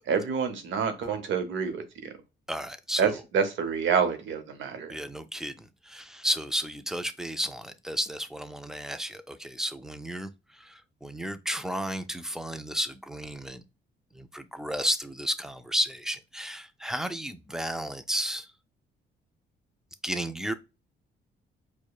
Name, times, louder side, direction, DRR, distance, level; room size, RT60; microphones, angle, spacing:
voice 1, 0.1-2.1 3.0-4.9, right 6 dB, 75° right, 0.8 m, -27 dB
voice 2, 2.5-3.2 4.9-10.3 10.6-13.6 14.1-18.5 20.0-20.5, equal, 5° right, 0.3 m, -33 dB
4.7 x 2.1 x 2.3 m
cardioid pair, 90°, 20 cm